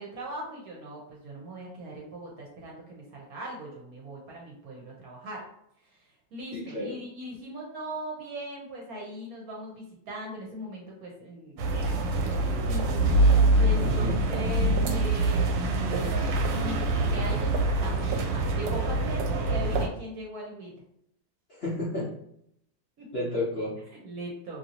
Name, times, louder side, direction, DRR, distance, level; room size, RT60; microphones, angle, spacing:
voice 1, 0.0-5.5 5.8-13.1 13.6-15.6 16.5-20.8 22.0-22.1 23.0-23.1 23.9-24.6, right 1 dB, 60° right, -2 dB, 1.1 m, -40 dB
voice 2, 6.5-7.0 13.8-14.2 21.5-22.1 23.1-23.8, left 1 dB, 70° left, -6 dB, 0.5 m, -31 dB
sound 1, 11.6-19.9, right 2 dB, 80° right, 1.2 m, -25 dB
3.0 x 2.7 x 2.7 m, 0.73 s
omnidirectional pair, 2.0 m